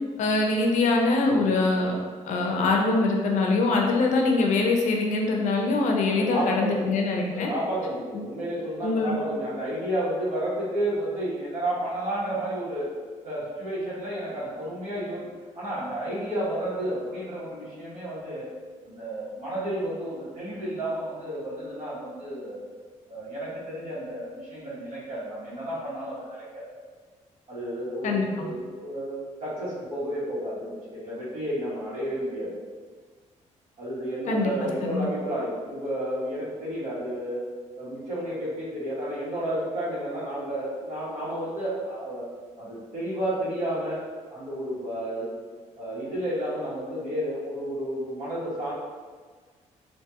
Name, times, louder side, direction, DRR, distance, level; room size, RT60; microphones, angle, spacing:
voice 1, 0.2-2.0 2.2-7.5 8.1-8.2 8.8-9.2 28.0-28.5 34.3-35.1, left 3 dB, 75° left, 1 dB, 0.5 m, -23 dB
voice 2, 6.2-7.0 7.3-12.9 13.2-15.3 15.5-18.5 18.9-22.6 23.1-26.6 27.5-32.6 33.8-37.4 37.8-42.3 42.6-44.0 44.3-45.3 45.7-48.7, right 1 dB, 65° right, -9 dB, 1.3 m, -31 dB
2.7 x 2.5 x 2.3 m, 1.5 s
cardioid pair, 110°, 13 cm